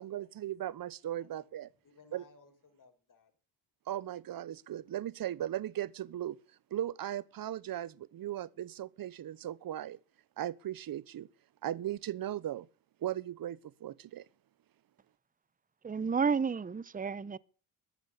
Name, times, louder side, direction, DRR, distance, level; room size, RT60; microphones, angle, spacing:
voice 1, 0.0-1.7 2.1-2.2 3.9-6.4 6.7-10.0 10.4-11.3 11.6-12.7 13.0-14.3, right 12 dB, 45° right, 1.0 m, -37 dB
voice 2, 1.8-3.4, left 4 dB, 40° left, 5.5 m, -61 dB
voice 3, 15.8-17.4, right 5 dB, 20° right, 0.8 m, -31 dB
14.5 x 10.5 x 6.7 m
supercardioid pair, 75°, 47 cm